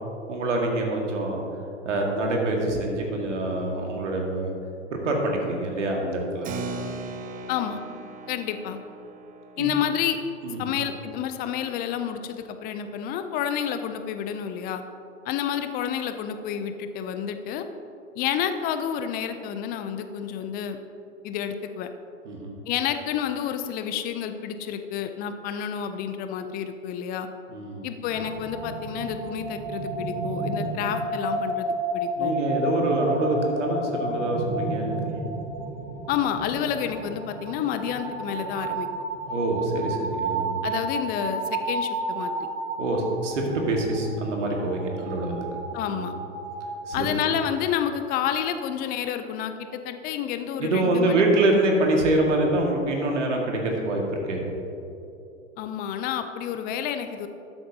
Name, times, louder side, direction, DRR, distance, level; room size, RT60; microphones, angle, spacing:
voice 1, 0.3-1.4 1.8-4.5 4.9-6.5 9.6-9.7 10.4-10.7 22.3-22.6 27.5-27.9 32.2-35.0 39.3-40.7 42.8-45.3 45.9-46.1 46.9-47.1 50.6-54.4, right 2 dB, 75° right, 1 dB, 1.8 m, -25 dB
Keyboard (musical), 6.4-12.5, right 3 dB, 20° right, 0.6 m, -40 dB
voice 2, 7.5-7.8 8.3-8.8 9.6-10.2 10.6-14.8 15.3-17.6 18.2-20.8 21.2-21.9 22.7-27.3 27.8-32.3 36.1-38.9 40.6-42.5 45.7-46.1 46.9-51.2 55.6-57.3, left 9 dB, 25° left, 8 dB, 0.4 m, -29 dB
sound 1, 28.1-46.8, right 2 dB, 40° right, 1.4 m, -31 dB
12.5 x 7.9 x 2.8 m, 2.8 s
hypercardioid pair, 105°, 37 cm